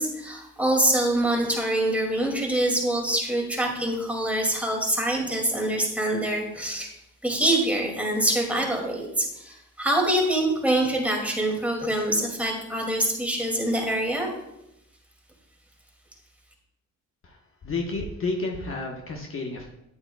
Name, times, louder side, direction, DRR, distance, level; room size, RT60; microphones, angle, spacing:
voice 1, 0.0-6.9 7.2-14.3, right 1 dB, 5° right, -1 dB, 2.3 m, -25 dB
voice 2, 17.6-19.7, left 3 dB, 45° left, 1 dB, 1.2 m, -31 dB
9.9 x 8.6 x 2.3 m, 0.84 s
cardioid pair, 90°, 30 cm